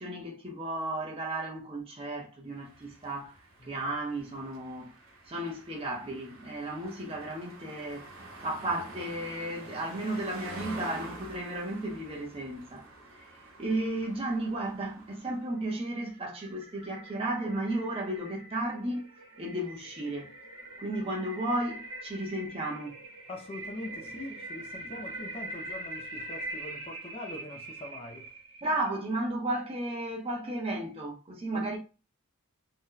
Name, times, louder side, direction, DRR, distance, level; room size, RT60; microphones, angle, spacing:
voice 1, 0.0-3.4 3.6-4.9 5.3-8.1 8.4-12.9 13.1-19.1 19.4-20.4 20.8-23.0 28.6-31.8, right 1 dB, 25° right, 0.6 m, -34 dB
sound 1, 2.6-15.6, right 2 dB, 55° right, 1.0 m, -48 dB
sound 2, 15.7-29.1, right 2 dB, 80° right, 1.0 m, -43 dB
voice 2, 23.3-28.3 31.5-31.8, left 1 dB, 25° left, 0.3 m, -43 dB
2.7 x 2.1 x 3.7 m
head